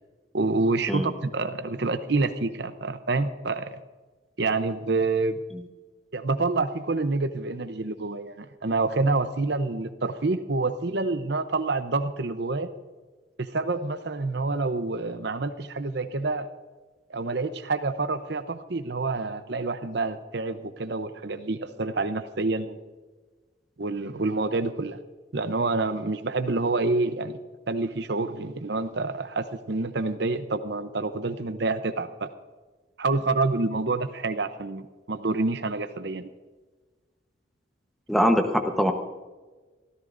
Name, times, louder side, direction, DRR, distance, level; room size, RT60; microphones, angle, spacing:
voice 1, 0.3-3.8 4.4-5.4 6.1-12.7 13.4-16.5 17.1-22.8 23.8-25.0 25.3-27.4 27.7-32.3 33.0-34.8 35.1-36.3, right 3 dB, 55° right, 10 dB, 0.7 m, -27 dB
voice 2, 38.1-38.9, equal, ahead, 4 dB, 1.0 m, -22 dB
25.5 x 14.0 x 2.6 m, 1.3 s
head